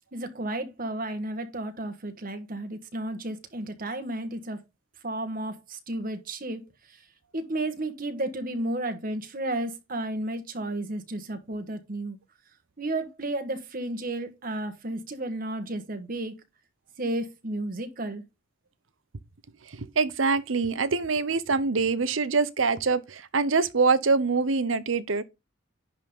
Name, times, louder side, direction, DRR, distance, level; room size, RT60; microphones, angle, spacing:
voice 1, 0.1-4.6 5.0-6.6 6.9-7.0 7.3-12.2 12.8-16.3 17.0-18.2, right 1 dB, 45° right, 1.4 m, -32 dB
voice 2, 19.7-25.2, right 4 dB, 80° right, 0.8 m, -24 dB
10.5 x 3.7 x 5.4 m
head